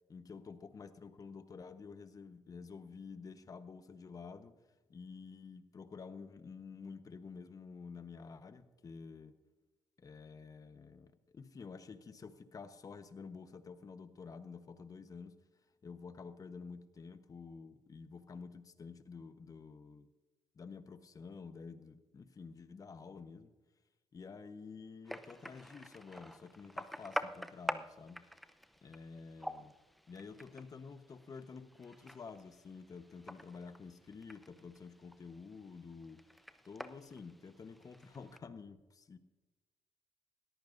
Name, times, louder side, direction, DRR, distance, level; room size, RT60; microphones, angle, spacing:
voice 1, 0.1-4.5 4.9-9.4 10.0-15.4 15.8-20.1 20.5-23.5 24.1-28.2 28.8-29.7 30.1-36.2 36.6-39.2, left 5 dB, 40° left, 10 dB, 1.1 m, -50 dB
sound 1, 25.0-38.4, equal, ahead, 0.7 m, -47 dB
20.0 x 14.0 x 2.7 m, 1.1 s
supercardioid pair, 70°, 9 cm